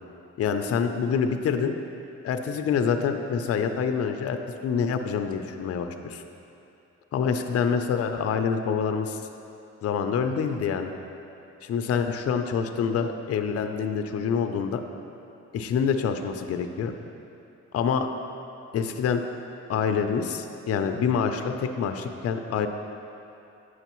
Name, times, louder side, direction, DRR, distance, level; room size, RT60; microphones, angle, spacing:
voice 1, 0.4-1.8 2.2-4.4 4.6-6.2 7.1-9.2 9.8-10.9 11.6-14.8 15.5-16.9 17.7-18.1 18.7-19.2 19.7-22.7, left 6 dB, 50° left, 6 dB, 0.5 m, -26 dB
8.9 x 6.3 x 3.0 m, 2.7 s
cardioid pair, 90°, 30 cm